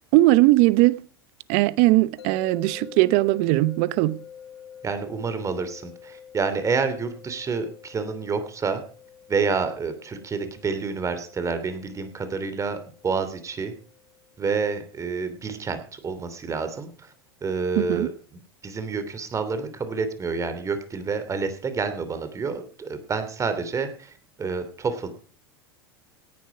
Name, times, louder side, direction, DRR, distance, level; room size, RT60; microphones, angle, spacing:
voice 1, 0.1-1.0 1.5-4.2 17.8-18.1, right 19 dB, 60° right, 0.9 m, -19 dB
sound 1, 2.2-15.2, left 8 dB, 80° left, 2.0 m, -47 dB
voice 2, 4.8-8.8 9.3-12.8 13.0-13.7 14.4-17.1 17.4-18.1 18.6-25.1, right 5 dB, 25° right, 2.9 m, -28 dB
17.5 x 10.5 x 5.1 m
hypercardioid pair, 95°, 13 cm